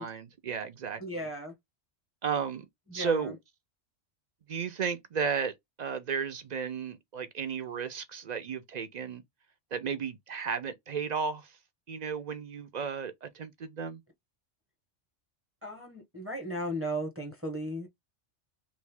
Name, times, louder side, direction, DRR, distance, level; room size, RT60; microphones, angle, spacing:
voice 1, 0.0-1.3 2.2-2.6 2.9-3.4 4.5-9.2 9.7-11.5 11.9-14.0, right 6 dB, 55° right, 0.5 m, -34 dB
voice 2, 1.0-1.5 2.9-3.3 15.6-17.9, equal, 15° right, 0.8 m, -36 dB
3.1 x 2.6 x 3.4 m
omnidirectional pair, 1.2 m